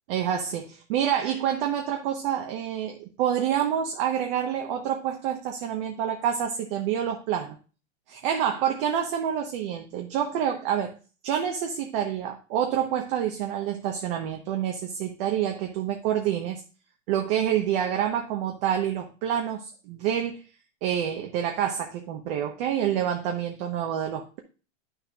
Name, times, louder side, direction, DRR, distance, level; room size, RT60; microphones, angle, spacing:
voice 1, 0.1-7.6 8.1-10.9 11.2-16.6 17.1-20.4 20.8-24.4, right 9 dB, 45° right, 1.1 m, -27 dB
9.8 x 6.5 x 2.4 m
supercardioid pair, 150°, 37 cm